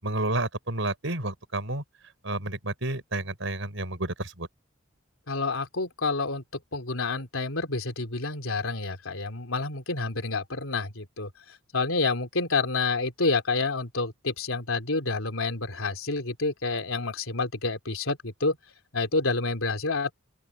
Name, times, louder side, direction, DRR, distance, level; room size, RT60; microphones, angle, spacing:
voice 1, 0.0-1.8 2.2-4.5, right 2 dB, 65° right, 5.7 m, -30 dB
voice 2, 5.3-6.4 6.7-11.3 11.7-18.6 18.9-20.1, left 3 dB, 85° left, 3.3 m, -28 dB
open air
head